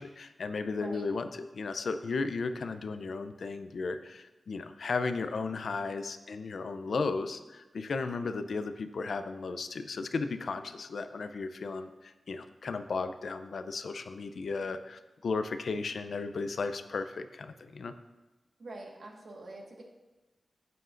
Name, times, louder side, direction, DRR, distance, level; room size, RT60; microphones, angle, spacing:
voice 1, 0.0-17.9, left 4 dB, 75° left, 9 dB, 0.5 m, -35 dB
voice 2, 0.7-1.1 18.6-19.8, right 2 dB, 70° right, -1 dB, 1.5 m, -45 dB
11.0 x 7.8 x 2.5 m, 1.1 s
wide cardioid pair, 95°, 0 cm